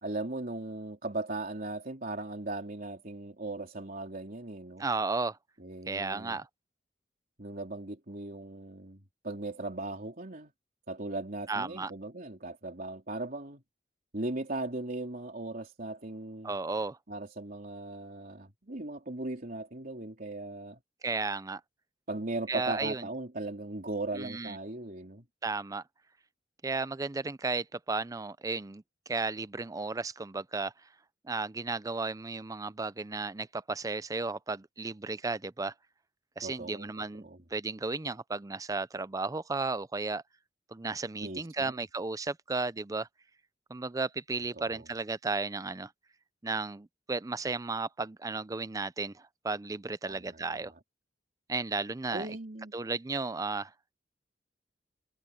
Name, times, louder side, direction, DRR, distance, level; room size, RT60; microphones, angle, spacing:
voice 1, 0.0-4.8 5.6-6.4 7.4-10.5 10.9-13.6 14.1-16.5 17.1-20.8 22.1-25.2 36.4-37.4 41.2-41.8 44.6-44.9 50.1-50.6 52.1-52.7, right 2 dB, 50° right, 3.6 m, -38 dB
voice 2, 4.8-5.4 5.9-6.5 11.5-11.9 16.4-17.0 21.0-21.6 22.5-23.0 24.2-24.6 25.4-25.8 26.6-30.9 31.2-35.7 36.4-37.2 37.5-40.2 40.7-43.1 43.7-45.9 46.4-50.7 51.5-52.4 52.7-53.9, right 3 dB, 20° right, 0.5 m, -34 dB
head